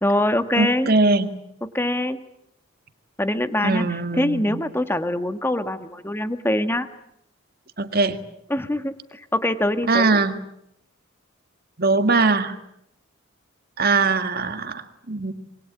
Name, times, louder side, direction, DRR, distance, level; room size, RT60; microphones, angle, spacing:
voice 1, 0.0-0.9 1.7-2.2 3.2-3.9 4.2-6.9 8.5-10.2, left 1 dB, 10° left, 9 dB, 1.4 m, -23 dB
voice 2, 0.6-1.3 3.6-4.7 7.8-8.2 9.9-10.4 11.8-12.6 13.8-15.3, right 3 dB, 45° right, 8 dB, 1.9 m, -21 dB
26.0 x 22.5 x 8.7 m, 0.78 s
head